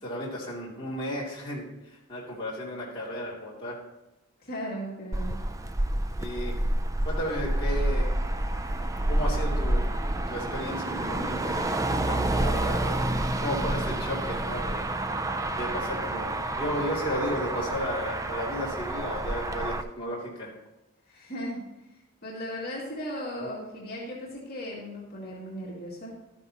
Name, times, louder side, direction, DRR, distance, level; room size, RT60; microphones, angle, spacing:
voice 1, 0.0-3.8 6.2-6.6 7.0-8.1 9.1-9.9 10.3-13.0 13.4-14.8 15.5-20.5, equal, 25° left, -6 dB, 2.6 m, -34 dB
voice 2, 4.4-5.4 21.1-21.6 22.2-26.1, equal, 45° left, -5 dB, 2.4 m, -36 dB
Motor vehicle (road), 5.1-19.8, right 1 dB, 15° right, 0.4 m, -29 dB
12.5 x 9.6 x 2.9 m, 0.99 s
head